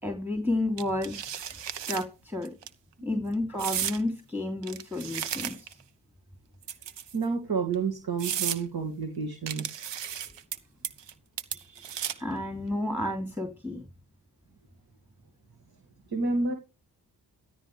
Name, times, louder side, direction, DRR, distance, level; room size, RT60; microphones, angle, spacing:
voice 1, 0.0-1.2 1.9-2.5 3.0-5.8 11.5-13.8, left 1 dB, 5° right, 5 dB, 3.3 m, -31 dB
sound 1, 0.8-2.0 2.4-2.7 3.6-4.0 4.6-5.8 6.6-7.2 7.7-7.8 8.2-8.6 9.5-10.6 10.8-11.1 11.4-12.3, right 9 dB, 70° right, 1.3 m, -34 dB
voice 2, 7.1-9.9 16.1-16.5, right 4 dB, 55° right, 4 dB, 2.6 m, -30 dB
14.5 x 13.5 x 3.4 m, 0.30 s
supercardioid pair, 50°, 44 cm